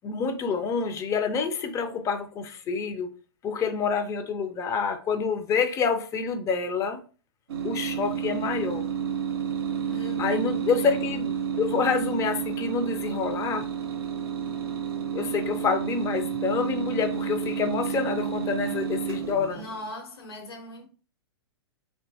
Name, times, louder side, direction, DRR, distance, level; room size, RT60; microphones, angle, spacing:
voice 1, 0.0-3.1 3.4-7.0 7.6-8.8 10.2-13.7 15.1-19.7, left 5 dB, 25° left, 0.5 m, -27 dB
sound 1, 7.5-19.8, right 8 dB, 70° right, 0.5 m, -30 dB
voice 2, 9.8-10.6 19.5-20.9, left 1 dB, 70° left, 1.0 m, -40 dB
2.8 x 2.2 x 2.6 m
hypercardioid pair, 105°, 14 cm